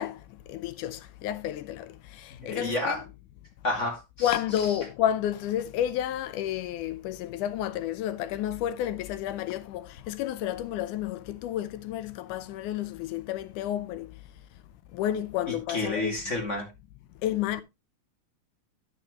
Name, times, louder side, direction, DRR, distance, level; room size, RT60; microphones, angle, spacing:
voice 1, 0.0-3.0 4.2-14.1 14.9-16.2 17.2-17.6, left 11 dB, 75° left, 2.0 m, -31 dB
voice 2, 2.4-3.0 3.6-4.3 4.6-4.7 15.5-16.7, left 2 dB, 25° left, 2.2 m, -30 dB
10.0 x 8.7 x 3.0 m
omnidirectional pair, 3.8 m